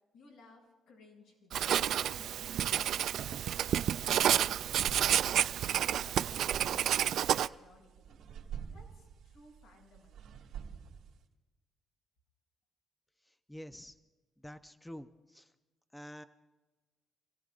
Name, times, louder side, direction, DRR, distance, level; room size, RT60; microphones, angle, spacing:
voice 1, 0.1-3.2 3.7-5.3 5.7-8.2 8.7-10.4, left 2 dB, 90° left, -3 dB, 6.5 m, -59 dB
Writing, 1.5-7.5, right 10 dB, 70° right, 0.4 m, -30 dB
sound 1, 4.2-11.2, right 7 dB, 85° right, 2.6 m, -48 dB
voice 2, 13.3-14.0 14.4-15.5 15.9-16.2, equal, 5° left, 9 dB, 0.7 m, -48 dB
29.5 x 16.5 x 2.5 m, 1.2 s
cardioid pair, 105°, 0 cm